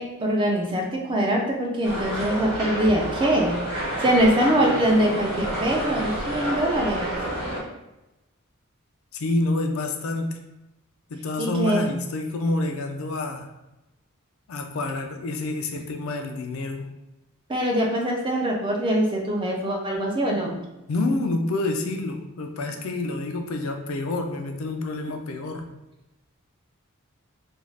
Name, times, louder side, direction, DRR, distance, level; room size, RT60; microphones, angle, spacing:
voice 1, 0.0-3.6 4.0-7.2 11.4-11.8 17.5-20.6, right 1 dB, 25° right, -1 dB, 0.4 m, -23 dB
sound 1, 1.8-7.6, right 1 dB, 85° right, 1.0 m, -29 dB
voice 2, 9.1-10.4 11.1-13.5 14.5-16.9 20.9-25.7, left 2 dB, 70° left, 5 dB, 0.4 m, -28 dB
2.5 x 2.3 x 3.2 m, 0.97 s
head